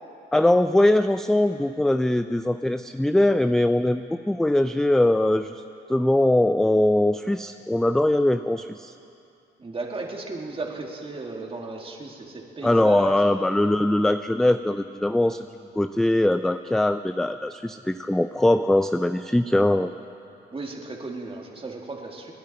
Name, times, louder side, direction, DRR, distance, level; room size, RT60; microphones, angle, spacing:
voice 1, 0.3-5.6 5.9-8.9 12.6-15.5 15.7-19.9, left 1 dB, ahead, 10 dB, 0.3 m, -21 dB
voice 2, 9.6-13.5 20.5-22.3, right 3 dB, 30° right, 0 dB, 2.2 m, -35 dB
29.5 x 10.5 x 4.3 m, 2.6 s
cardioid pair, 90°, 20 cm